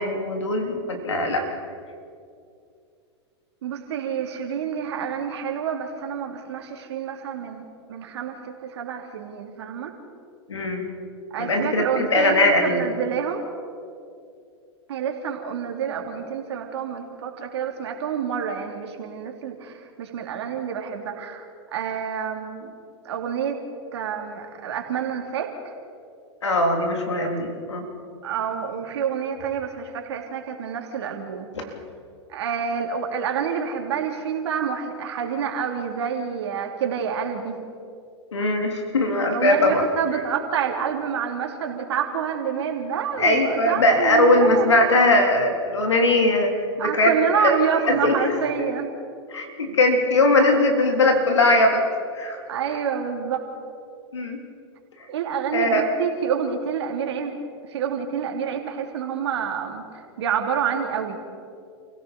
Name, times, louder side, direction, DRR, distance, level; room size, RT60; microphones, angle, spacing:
voice 1, 0.0-1.5 10.5-10.8 11.4-12.8 26.4-27.8 38.3-39.8 43.2-47.5 47.9-48.3 48.7-48.8 49.3-51.8 52.1-52.4 54.1-54.4 55.5-55.8, left 2 dB, 90° left, 3 dB, 3.6 m, -20 dB
voice 2, 3.6-9.9 11.3-13.4 14.9-22.7 23.0-23.6 23.9-25.7 28.2-31.5 32.3-37.6 39.3-44.7 46.8-48.9 52.5-53.4 55.1-57.4 57.7-61.2, right 7 dB, 70° right, 3 dB, 3.1 m, -28 dB
29.0 x 16.5 x 5.4 m, 2.4 s
hypercardioid pair, 105°, 14 cm